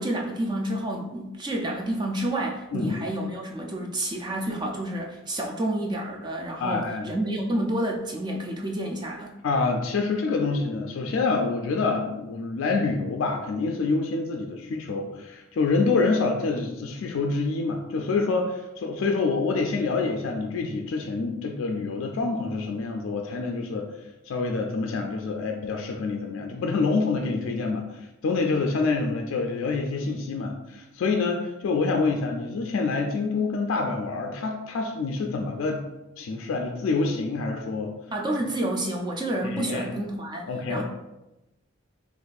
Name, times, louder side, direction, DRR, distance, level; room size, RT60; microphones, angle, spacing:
voice 1, 0.0-9.3 38.1-40.8, right 1 dB, 20° right, 0 dB, 0.3 m, -29 dB
voice 2, 2.7-3.1 6.6-7.1 9.4-23.9 24.2-35.8 36.2-37.9 39.4-39.9 40.5-40.8, left 3 dB, 70° left, 2 dB, 0.3 m, -27 dB
2.5 x 2.4 x 3.9 m, 0.97 s
head